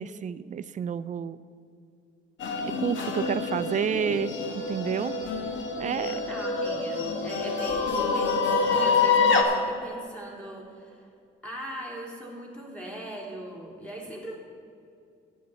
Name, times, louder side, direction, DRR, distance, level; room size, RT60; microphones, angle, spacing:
voice 1, 0.0-1.4 2.6-5.2 5.8-6.1, right 8 dB, 40° right, 15 dB, 0.4 m, -30 dB
sound 1, 2.4-9.4, left 4 dB, 70° left, 1.3 m, -26 dB
voice 2, 5.8-11.1 11.4-14.4, right 1 dB, 5° left, -4 dB, 3.1 m, -40 dB
13.5 x 9.3 x 4.1 m, 2.4 s
cardioid pair, 90°, 20 cm